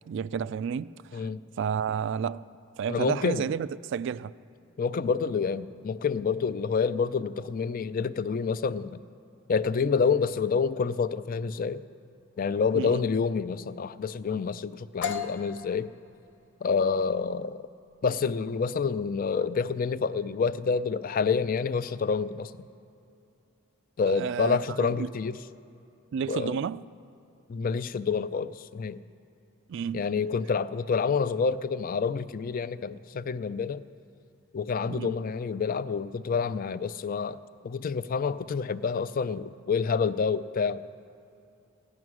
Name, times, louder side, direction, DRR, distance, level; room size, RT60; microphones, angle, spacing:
voice 1, 0.1-1.3 1.6-2.4 2.8-4.3 12.7-13.1 24.1-25.1 26.1-26.8 29.7-30.0 34.9-35.2, right 7 dB, 65° right, 0.3 m, -31 dB
voice 2, 2.9-3.5 4.8-9.0 9.5-11.8 12.4-15.9 16.6-17.6 18.0-22.5 24.0-25.4 26.3-26.6 27.5-29.0 29.9-33.8 34.5-37.4 37.6-40.8, left 5 dB, 45° left, 0.4 m, -28 dB
sound 1, 15.0-22.6, left 7 dB, 60° left, 0.8 m, -41 dB
15.5 x 11.0 x 6.2 m
head